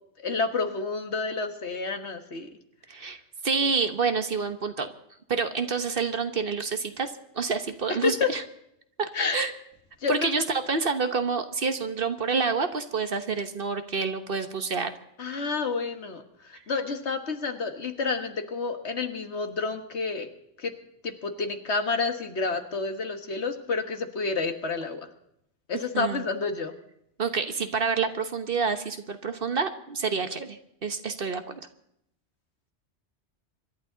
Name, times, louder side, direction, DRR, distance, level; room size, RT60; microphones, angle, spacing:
voice 1, 0.2-2.5 8.0-8.3 9.1-9.5 10.0-10.3 15.2-16.2 16.5-20.3 20.6-20.7 21.0-25.1 25.7-26.7, left 4 dB, 70° left, 7 dB, 1.7 m, -29 dB
voice 2, 3.4-4.9 5.3-8.4 9.0-9.5 10.1-14.9 25.9-26.2 27.2-31.6, right 5 dB, 55° right, 8 dB, 1.3 m, -28 dB
25.5 x 12.0 x 4.0 m, 0.75 s
omnidirectional pair, 1.2 m